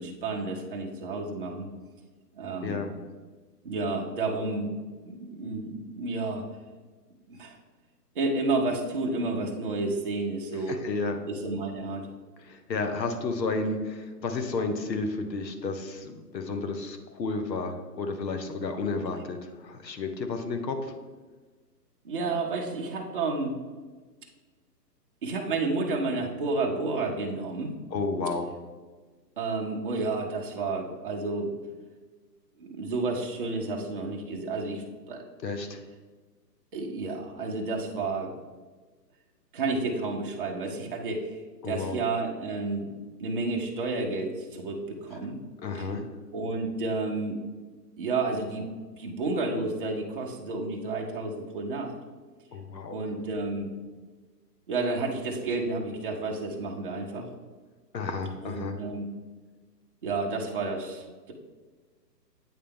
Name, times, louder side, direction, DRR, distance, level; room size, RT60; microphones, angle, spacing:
voice 1, 0.0-1.7 2.3-2.8 3.6-4.7 5.0-6.5 7.3-7.6 8.2-10.8 11.2-12.1 22.0-23.6 25.2-27.8 29.4-31.5 32.6-35.2 36.7-38.4 39.5-41.4 41.6-42.9 43.2-45.4 45.8-45.9 46.3-47.4 48.0-48.7 49.0-51.9 52.9-53.7 54.7-57.3 58.4-59.1 60.0-61.3, right 3 dB, 35° right, 0 dB, 0.6 m, -31 dB
voice 2, 2.6-2.9 10.7-11.2 12.4-20.9 27.9-28.5 35.4-35.8 41.6-42.0 45.6-46.1 52.5-53.0 57.9-58.8, left 3 dB, 80° left, 6 dB, 1.0 m, -32 dB
8.7 x 3.3 x 3.5 m, 1.4 s
hypercardioid pair, 160°, 50 cm